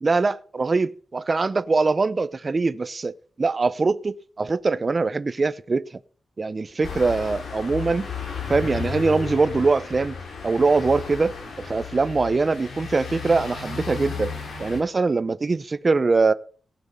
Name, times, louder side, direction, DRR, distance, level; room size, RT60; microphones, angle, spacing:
voice 1, 0.0-5.9 6.4-8.1 8.5-10.2 10.4-14.3 14.6-16.3, right 3 dB, 30° right, 0.5 m, -22 dB
sound 1, 6.8-14.8, left 5 dB, 70° left, 2.7 m, -34 dB
17.5 x 6.1 x 5.2 m
wide cardioid pair, 175°, 0 cm